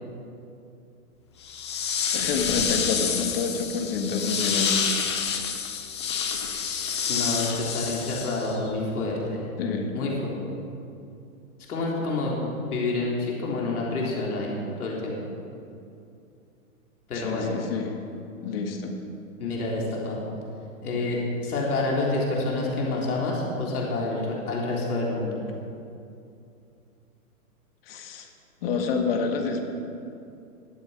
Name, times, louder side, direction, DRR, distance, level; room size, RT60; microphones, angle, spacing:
sound 1, 1.4-8.7, left 7 dB, 20° left, 0.5 m, -28 dB
voice 1, 2.1-4.8 9.6-9.9 17.1-17.9 18.4-18.9 27.9-28.3 28.6-29.6, left 5 dB, 40° left, 4 dB, 1.7 m, -28 dB
voice 2, 6.6-9.5 9.9-10.4 11.7-15.2 17.1-17.5 19.4-20.2 20.8-25.4, left 2 dB, 75° left, -3 dB, 3.8 m, -28 dB
21.0 x 7.7 x 5.2 m, 2.6 s
hypercardioid pair, 155°, 45 cm